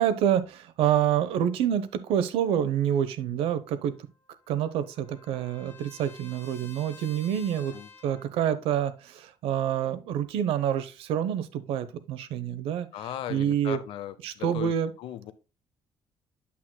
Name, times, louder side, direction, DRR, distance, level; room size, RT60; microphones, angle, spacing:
voice 1, 0.0-4.0 4.5-7.8 8.0-12.9 13.3-13.8 14.2-14.9, right 9 dB, 90° right, 0.8 m, -27 dB
Trumpet, 3.9-8.3, left 4 dB, 25° left, 1.2 m, -51 dB
voice 2, 12.9-15.3, left 11 dB, 70° left, 0.6 m, -38 dB
8.5 x 7.7 x 2.2 m
cardioid pair, 175°, 9 cm